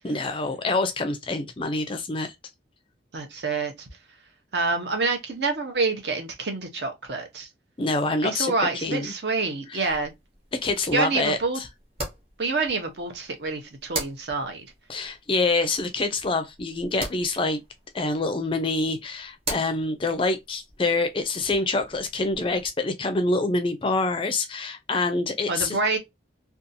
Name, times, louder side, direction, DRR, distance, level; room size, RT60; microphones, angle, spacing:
voice 1, 0.0-2.3 7.8-9.1 9.7-9.9 10.5-11.7 14.9-17.6 17.9-25.8, left 2 dB, 25° left, 0.4 m, -26 dB
voice 2, 3.1-3.9 4.5-7.5 8.2-10.1 10.9-11.6 12.4-14.7 25.5-26.0, right 3 dB, 55° right, 0.7 m, -27 dB
sound 1, 9.8-22.7, right 2 dB, 30° right, 0.9 m, -41 dB
2.6 x 2.3 x 2.5 m
head